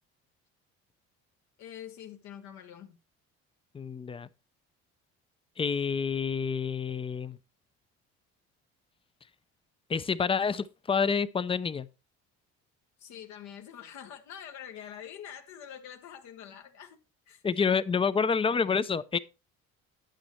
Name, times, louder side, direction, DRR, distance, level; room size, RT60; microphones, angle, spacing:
voice 1, 1.6-3.0 13.0-17.0 17.3-17.4, left 9 dB, 75° left, 1.3 m, -45 dB
voice 2, 3.7-4.3 5.6-7.4 9.9-11.9 17.4-19.2, left 5 dB, 20° left, 0.5 m, -28 dB
9.6 x 9.0 x 3.1 m
cardioid pair, 115°, 29 cm